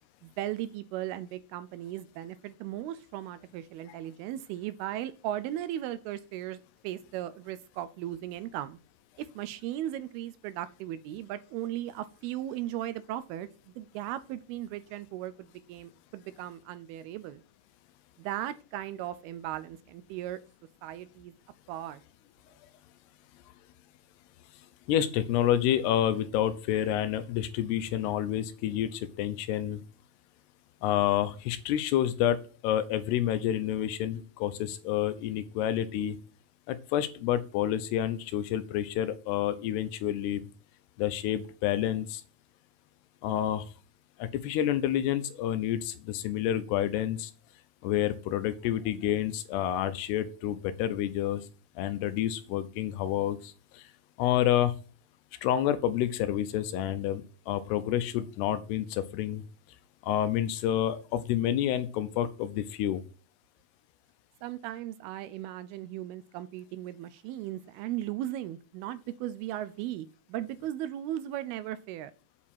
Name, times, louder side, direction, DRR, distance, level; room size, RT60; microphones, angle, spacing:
voice 1, 0.2-8.8 9.2-13.5 13.8-17.4 18.2-20.4 20.8-21.3 21.7-22.0 64.4-72.1, right 13 dB, 80° right, 14 dB, 2.4 m, -37 dB
voice 2, 24.9-29.8 30.8-36.2 36.7-40.4 41.0-42.2 43.2-43.6 44.2-47.3 47.8-51.4 51.8-53.8 54.2-54.7 55.4-59.4 60.0-63.0, left 11 dB, 80° left, 12 dB, 2.8 m, -29 dB
8.3 x 4.7 x 7.2 m, 0.36 s
omnidirectional pair, 4.7 m